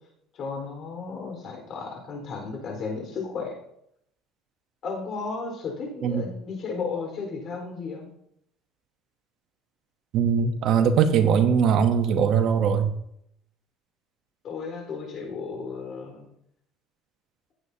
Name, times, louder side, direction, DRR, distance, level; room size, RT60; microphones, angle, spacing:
voice 1, 0.3-3.6 4.8-8.1 14.4-16.3, left 4 dB, 45° left, 1 dB, 4.2 m, -34 dB
voice 2, 10.1-12.9, right 7 dB, 55° right, 8 dB, 1.0 m, -21 dB
16.0 x 8.3 x 2.8 m, 0.74 s
cardioid pair, 130°, 0 cm